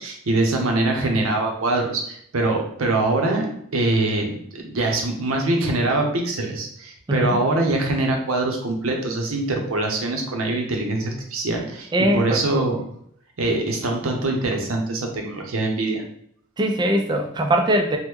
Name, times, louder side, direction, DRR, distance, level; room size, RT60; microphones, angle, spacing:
voice 1, 0.0-12.8 13.4-16.0, right 2 dB, 90° right, 2 dB, 0.7 m, -23 dB
voice 2, 7.1-7.4 11.9-12.6 16.6-18.0, right 1 dB, 20° right, 3 dB, 0.3 m, -21 dB
3.0 x 2.1 x 3.4 m, 0.67 s
head